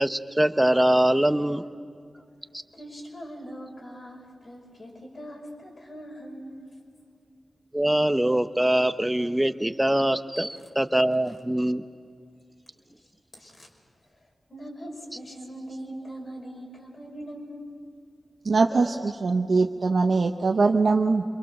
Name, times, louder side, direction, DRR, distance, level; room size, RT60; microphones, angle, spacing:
voice 1, 0.0-1.6 7.7-11.8, right 1 dB, 10° right, 9 dB, 1.1 m, -23 dB
voice 2, 2.7-6.7 13.4-13.7 14.5-17.7, equal, 55° left, 0 dB, 5.9 m, -41 dB
voice 3, 18.4-21.2, right 4 dB, 70° right, 3 dB, 0.9 m, -22 dB
26.5 x 22.5 x 6.8 m, 2.2 s
cardioid pair, 45°, 0 cm